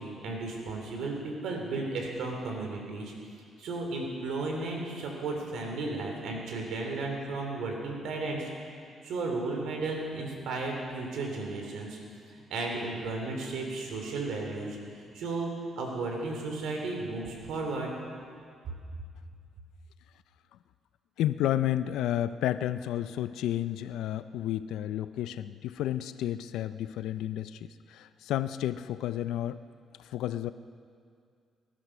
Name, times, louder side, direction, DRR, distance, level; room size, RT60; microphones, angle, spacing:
voice 1, 0.0-3.1 3.6-8.5 9.0-12.0 12.3-14.8 15.1-17.9, right 3 dB, 80° right, 1 dB, 3.2 m, -34 dB
voice 2, 21.2-29.6 30.0-30.5, left 12 dB, 85° left, 13 dB, 0.4 m, -31 dB
19.0 x 11.5 x 6.1 m, 2.2 s
cardioid pair, 90°, 0 cm